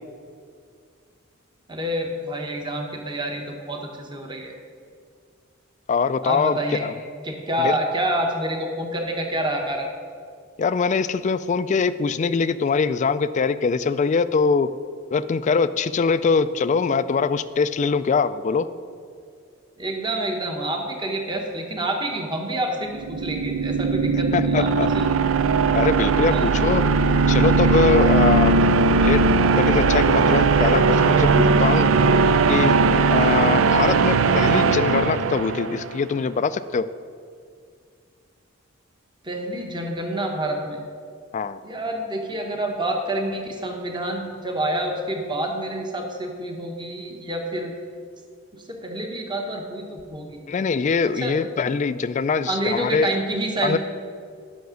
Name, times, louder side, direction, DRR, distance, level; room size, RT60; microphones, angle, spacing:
voice 1, 1.7-4.5 6.2-6.9 7.2-9.9 19.8-25.1 26.3-26.6 39.2-40.8 41.6-47.7 48.5-50.4 51.1-51.4 52.5-53.8, right 1 dB, 20° right, 2 dB, 0.9 m, -28 dB
voice 2, 5.9-6.9 7.6-7.7 10.6-14.7 15.1-18.7 24.3-24.9 25.7-26.8 27.3-29.2 29.5-31.9 32.5-32.8 33.1-36.9 41.3-41.6 50.5-53.2 53.6-53.8, left 5 dB, 35° left, 14 dB, 0.3 m, -23 dB
sound 1, 22.9-35.9, right 4 dB, 70° right, 0.4 m, -19 dB
9.3 x 5.8 x 6.3 m, 2.2 s
head